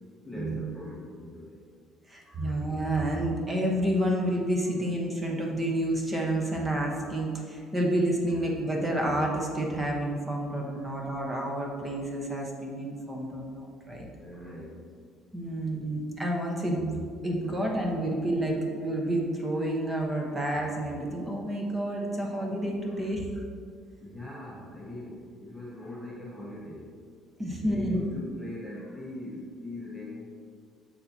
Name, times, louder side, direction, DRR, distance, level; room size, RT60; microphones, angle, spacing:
voice 1, 0.2-1.6 2.2-2.5 8.3-8.4 10.7-10.9 14.2-14.9 17.4-17.6 20.5-20.6 22.9-23.1 24.0-26.9 27.6-30.2, left 1 dB, 5° left, -7 dB, 1.4 m, -41 dB
voice 2, 2.1-14.1 15.3-23.3 27.4-28.0, right 1 dB, 15° right, -1 dB, 1.0 m, -29 dB
7.1 x 6.7 x 2.8 m, 2.1 s
cardioid pair, 135°, 0 cm